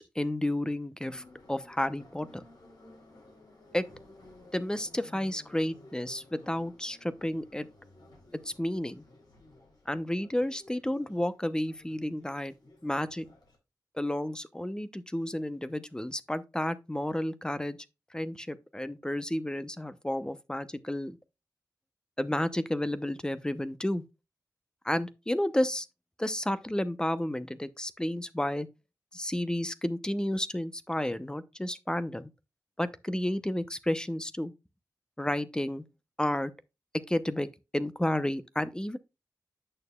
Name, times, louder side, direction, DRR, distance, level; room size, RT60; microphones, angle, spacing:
voice 1, 0.0-2.4 3.7-3.9 4.5-7.7 8.4-9.0 9.9-12.5 12.8-13.2 13.9-17.8 18.1-21.2 22.2-24.0 24.8-25.9 26.2-28.7 29.1-32.3 32.8-34.5 35.2-35.8 36.2-36.5 37.1-39.0, left 1 dB, 10° left, 0.7 m, -31 dB
Subway metro underground, 1.0-13.5, left 2 dB, 75° left, 3.6 m, -56 dB
8.8 x 6.5 x 2.3 m
cardioid pair, 65°, 7 cm